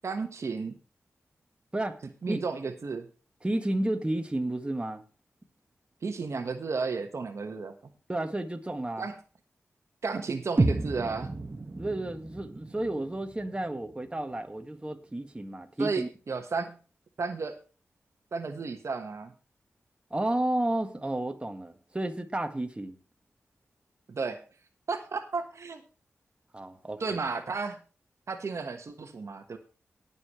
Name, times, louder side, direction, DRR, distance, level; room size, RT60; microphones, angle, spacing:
voice 1, 0.0-0.8 2.2-3.1 6.0-7.7 9.0-9.2 10.0-11.3 15.8-16.8 17.2-17.6 18.3-19.3 24.1-24.4 24.9-25.8 27.0-27.8 28.3-29.6, right 4 dB, 65° right, 7 dB, 1.3 m, -33 dB
voice 2, 3.4-5.0 8.1-9.1 11.7-16.1 20.1-23.0 26.5-27.2, right 1 dB, 20° right, 6 dB, 1.6 m, -32 dB
sound 1, 10.6-14.6, right 2 dB, 40° right, 1.5 m, -32 dB
19.5 x 7.1 x 3.1 m, 0.35 s
cardioid pair, 50°, 5 cm